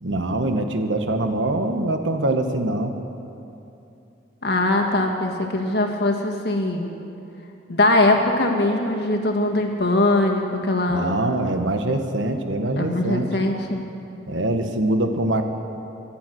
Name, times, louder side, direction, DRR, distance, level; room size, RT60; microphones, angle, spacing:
voice 1, 0.0-2.9 10.9-13.3 14.3-15.4, right 1 dB, 85° right, 6 dB, 1.1 m, -23 dB
voice 2, 4.4-6.9 7.7-11.1 12.8-13.8, left 2 dB, 60° left, 2 dB, 1.6 m, -21 dB
14.0 x 10.5 x 7.7 m, 2.7 s
head